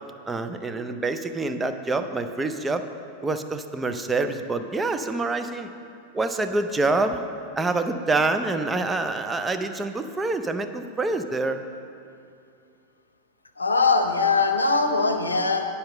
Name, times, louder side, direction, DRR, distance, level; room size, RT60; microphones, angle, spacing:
voice 1, 0.3-2.8 3.2-5.7 6.1-7.2 7.6-11.6, right 3 dB, 15° right, 8 dB, 0.5 m, -26 dB
voice 2, 13.6-15.7, left 3 dB, 80° left, 6 dB, 0.7 m, -21 dB
10.5 x 5.6 x 6.6 m, 2.5 s
figure-of-eight pair, 90°, 0 cm